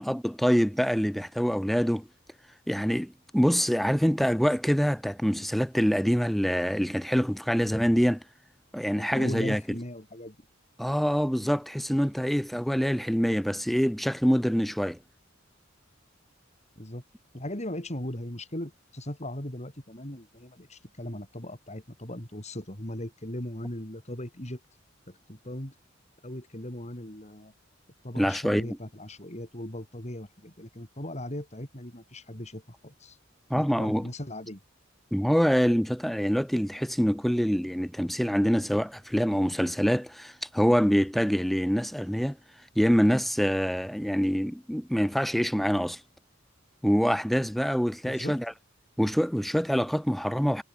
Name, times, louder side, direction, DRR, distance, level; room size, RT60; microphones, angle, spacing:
voice 1, 0.0-2.1 2.7-8.2 8.7-9.6 10.8-15.0 28.2-28.8 33.5-34.1 35.1-42.4 42.8-46.0 46.8-48.5 49.0-50.6, equal, ahead, 0.6 m, -25 dB
voice 2, 9.0-10.4 16.8-17.0 17.3-24.6 25.1-25.7 26.2-27.5 28.0-33.2 33.5-34.6 48.0-48.4, left 1 dB, 35° left, 5.5 m, -38 dB
head